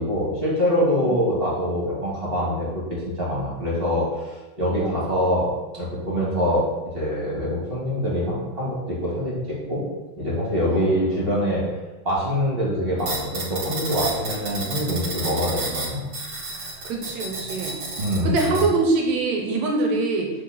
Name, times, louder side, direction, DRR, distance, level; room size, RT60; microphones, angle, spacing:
voice 1, 0.0-5.5 5.7-6.7 6.9-9.8 10.2-11.6 12.0-16.0 18.0-18.6, equal, 20° right, -6 dB, 2.1 m, -24 dB
sound 1, 13.0-18.6, right 3 dB, 45° right, 1.6 m, -31 dB
voice 2, 16.8-17.8 18.2-20.3, right 3 dB, 65° right, 1 dB, 2.1 m, -23 dB
6.4 x 4.6 x 6.2 m, 1.1 s
omnidirectional pair, 3.7 m